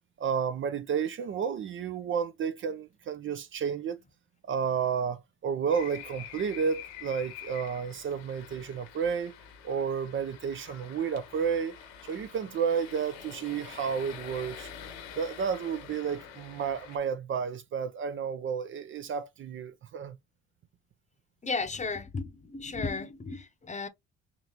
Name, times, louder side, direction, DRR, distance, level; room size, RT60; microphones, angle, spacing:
voice 1, 0.2-4.0 4.5-9.3 9.6-11.7 12.0-14.7 15.2-20.2, right 6 dB, 40° right, 0.5 m, -31 dB
sound 1, 5.7-17.0, left 8 dB, 85° left, 1.3 m, -46 dB
voice 2, 21.4-23.9, left 4 dB, 25° left, 0.9 m, -34 dB
3.7 x 2.8 x 2.8 m
supercardioid pair, 75°, 30 cm